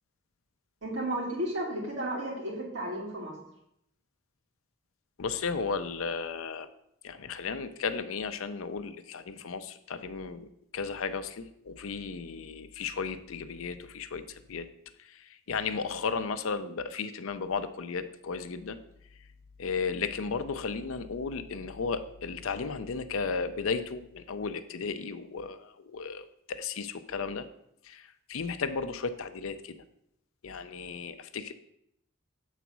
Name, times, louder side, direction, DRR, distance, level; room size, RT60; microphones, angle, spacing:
voice 1, 0.8-3.4, right 1 dB, 60° right, -4 dB, 2.6 m, -33 dB
voice 2, 5.2-6.7 7.0-10.5 10.7-14.7 15.0-18.8 19.6-27.5 27.8-29.8 30.4-31.5, left 5 dB, 75° left, 11 dB, 0.5 m, -34 dB
7.1 x 4.1 x 6.0 m, 0.77 s
head